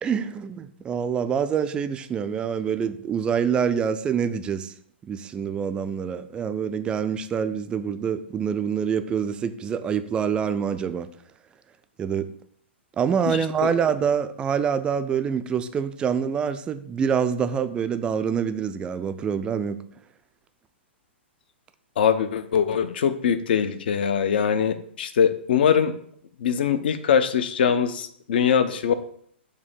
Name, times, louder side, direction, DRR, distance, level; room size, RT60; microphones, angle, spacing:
voice 1, 0.0-4.7 5.0-11.1 12.0-12.3 13.0-19.8, right 7 dB, 15° right, 0.3 m, -26 dB
voice 2, 13.3-13.7 22.0-25.9 26.4-28.9, left 7 dB, 55° left, 0.6 m, -22 dB
6.7 x 2.7 x 5.1 m
figure-of-eight pair, 115°, 6 cm